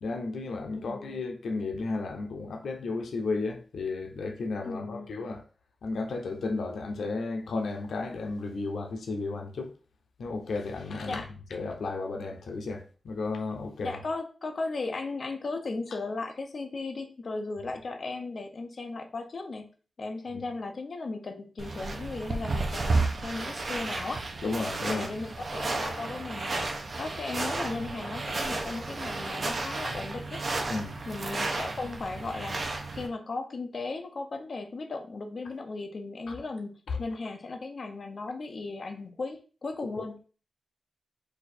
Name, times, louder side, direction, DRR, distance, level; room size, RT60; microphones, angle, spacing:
voice 1, 0.0-5.4 5.8-9.7 10.2-11.2 11.5-13.9 20.3-20.4 24.4-25.1 30.7-31.0 36.3-36.4 36.9-37.0, left 3 dB, 90° left, 0.7 m, -33 dB
voice 2, 0.7-1.0 4.6-5.1 11.1-11.3 13.8-19.7 20.0-24.2 24.9-30.5 31.1-40.2, left 3 dB, 45° left, 0.7 m, -36 dB
sound 1, 21.6-33.1, right 3 dB, 45° right, 0.7 m, -32 dB
4.3 x 2.6 x 4.3 m
wide cardioid pair, 165°, 0 cm